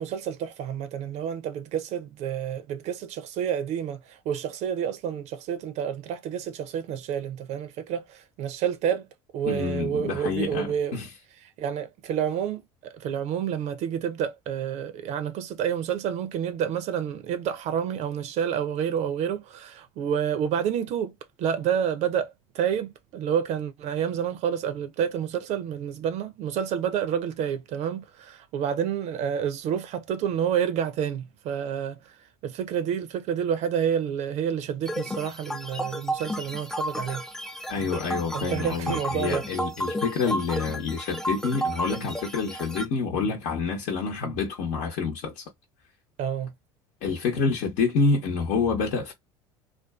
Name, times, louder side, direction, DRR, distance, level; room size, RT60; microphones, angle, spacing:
voice 1, 0.0-9.1 9.3-11.0 11.4-32.2 32.4-37.2 38.3-39.5 46.2-46.5, right 8 dB, 55° right, 0.5 m, -29 dB
voice 2, 9.5-11.1 37.7-45.4 47.0-49.1, left 4 dB, 65° left, 0.9 m, -27 dB
sound 1, 34.9-42.8, equal, 5° left, 0.5 m, -32 dB
2.5 x 2.3 x 2.3 m
hypercardioid pair, 75°, 14 cm